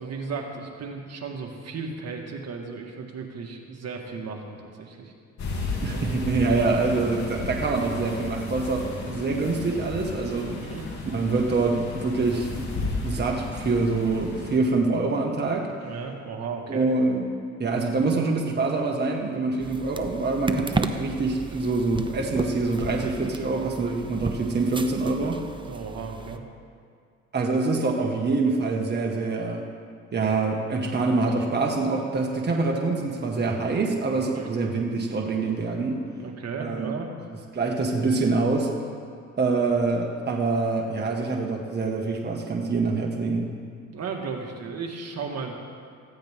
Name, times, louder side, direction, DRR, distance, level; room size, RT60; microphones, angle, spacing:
voice 1, 0.0-5.1 10.6-10.9 15.8-16.9 25.6-26.4 34.3-34.5 36.2-37.1 43.9-45.5, right 5 dB, 55° right, 1 dB, 1.9 m, -35 dB
sound 1, 5.4-14.6, left 3 dB, 65° left, 3.0 m, -33 dB
voice 2, 5.8-10.6 11.1-12.7 13.0-15.7 16.7-17.2 17.6-25.4 27.3-29.6 30.1-36.0 36.6-36.9 37.5-38.7 39.4-43.5, right 3 dB, 35° right, 0 dB, 1.8 m, -25 dB
sound 2, 19.6-26.4, right 3 dB, 15° right, 0.8 m, -33 dB
19.5 x 15.0 x 3.7 m, 2.2 s
cardioid pair, 90°, 30 cm